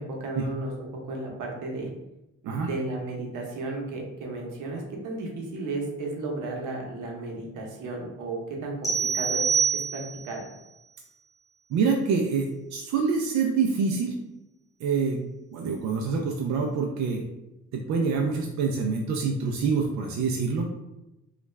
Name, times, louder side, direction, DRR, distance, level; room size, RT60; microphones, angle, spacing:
voice 1, 0.0-1.9 2.4-10.4, right 2 dB, 85° right, 0 dB, 0.9 m, -34 dB
sound 1, 8.8-10.4, right 6 dB, 10° left, 1.1 m, -26 dB
voice 2, 11.7-14.1 14.8-15.2 15.5-17.2 17.7-20.7, right 5 dB, 65° right, 1 dB, 0.5 m, -26 dB
3.1 x 2.4 x 3.1 m, 0.95 s
cardioid pair, 90°, 30 cm